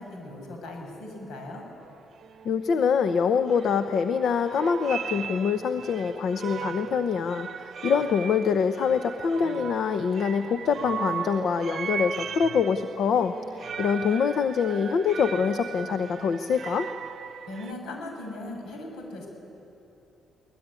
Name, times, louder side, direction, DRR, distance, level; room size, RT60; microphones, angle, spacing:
voice 1, 0.0-1.7 17.5-19.3, left 2 dB, 85° left, 2 dB, 6.6 m, -38 dB
sound 1, 1.8-1.9 2.2-2.6 3.5-4.2 4.5-17.7, right 7 dB, 55° right, 0.8 m, -37 dB
voice 2, 2.4-16.9, left 6 dB, 65° left, 9 dB, 0.8 m, -25 dB
22.5 x 20.0 x 9.8 m, 2.9 s
cardioid pair, 90°, 0 cm